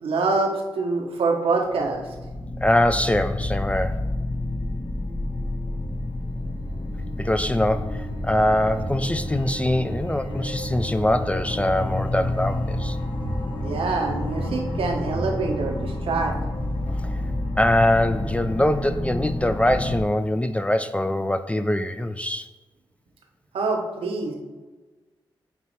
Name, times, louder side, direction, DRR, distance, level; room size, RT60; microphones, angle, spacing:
voice 1, 0.0-2.1 13.6-16.3 23.5-24.3, right 3 dB, 85° right, 1 dB, 1.0 m, -25 dB
sound 1, 1.7-20.0, left 1 dB, 60° left, 0.9 m, -29 dB
voice 2, 2.6-4.0 7.2-8.0 8.2-13.0 17.0-17.1 17.6-22.5, left 1 dB, 15° left, 9 dB, 0.4 m, -23 dB
6.7 x 3.1 x 4.5 m, 1.2 s
cardioid pair, 50°, 9 cm